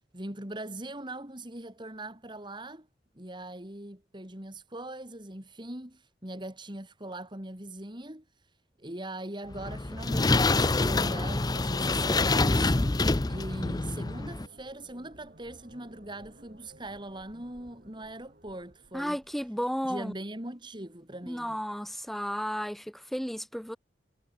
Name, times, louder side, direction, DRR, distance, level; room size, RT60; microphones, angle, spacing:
voice 1, 0.1-2.9 3.2-8.2 8.8-13.0 13.3-19.2 19.8-21.6, right 1 dB, 25° right, 3.7 m, -41 dB
sound 1, 9.5-14.5, left 3 dB, 20° left, 0.6 m, -26 dB
sound 2, 11.4-20.1, right 1 dB, 50° right, 3.8 m, -57 dB
voice 2, 18.9-20.1 21.3-22.8 23.1-23.8, equal, ahead, 1.1 m, -33 dB
head